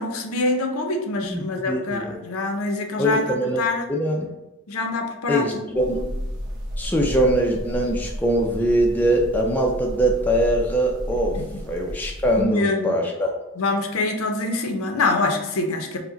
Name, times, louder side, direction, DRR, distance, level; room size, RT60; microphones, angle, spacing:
voice 1, 0.0-3.9 4.7-6.0 11.4-11.6 12.4-13.0 13.6-16.0, left 2 dB, 85° left, 4 dB, 0.6 m, -25 dB
voice 2, 1.2-2.1 3.0-3.6 3.9-4.3 5.3-6.1 6.8-11.4 11.7-13.4, right 1 dB, 10° left, 0 dB, 0.4 m, -22 dB
sound 1, 5.8-12.4, equal, 55° right, 0.9 m, -32 dB
4.6 x 2.1 x 3.9 m, 1.0 s
head